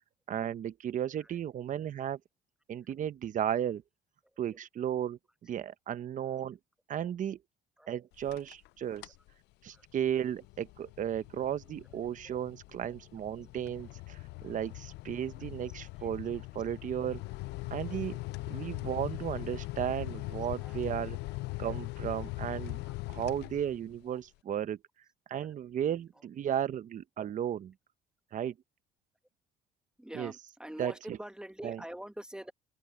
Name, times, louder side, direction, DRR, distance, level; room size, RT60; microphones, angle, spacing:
voice 1, 0.3-2.2 2.7-3.8 4.4-6.6 6.9-7.4 7.9-9.1 9.6-17.2 17.7-18.2 18.5-21.2 21.6-22.8 23.1-24.8 25.3-27.7 28.3-28.5 30.1-30.3 30.8-31.2 31.6-31.8, right 10 dB, 50° right, 1.0 m, -34 dB
sound 1, 8.1-8.7 9.0-9.3 9.7-24.0, left 21 dB, 85° left, 0.5 m, -41 dB
voice 2, 30.0-32.5, right 1 dB, 5° right, 1.1 m, -45 dB
open air
cardioid pair, 110°, 17 cm